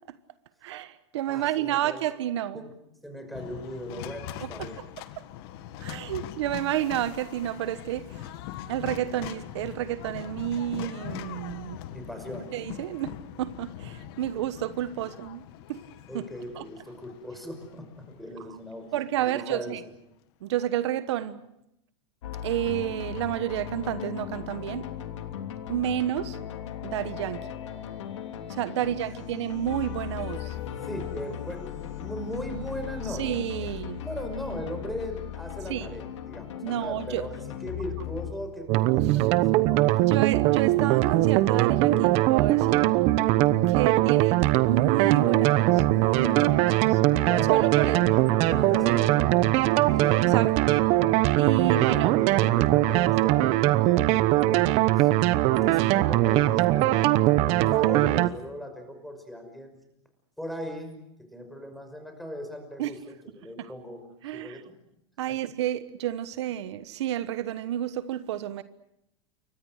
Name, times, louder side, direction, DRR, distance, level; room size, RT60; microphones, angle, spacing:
voice 1, 0.6-2.7 4.6-4.9 5.2-5.3 5.8-8.3 8.7-11.8 12.5-15.4 15.7-15.8 16.1-16.2 16.5-16.6 18.9-19.8 20.4-21.4 22.4-24.8 25.7-26.4 26.8-27.5 28.5-30.6 33.1-34.1 35.7-35.9 36.6-37.3 39.1-39.3 40.1-42.8 43.7-44.4 44.6-47.0 47.5-48.0 50.1-50.7 51.4-52.1 62.8-62.9 63.6-63.7 64.2-64.6 65.2-68.6, right 12 dB, 75° right, 1.3 m, -30 dB
voice 2, 1.3-2.0 2.5-2.7 3.0-4.8 11.9-12.5 16.1-18.9 19.2-19.8 28.7-28.9 30.8-33.3 33.8-40.1 46.1-46.4 47.1-49.5 49.8-50.7 51.6-55.1 55.5-57.1 57.4-59.8 60.4-64.0 64.3-64.7, equal, ahead, 5.8 m, -38 dB
sound 1, 3.3-19.6, left 12 dB, 55° left, 1.9 m, -42 dB
sound 2, 22.2-38.3, left 10 dB, 90° left, 3.3 m, -37 dB
sound 3, 38.7-58.3, right 16 dB, 45° right, 1.1 m, -21 dB
29.0 x 24.0 x 6.5 m
supercardioid pair, 140°, 15 cm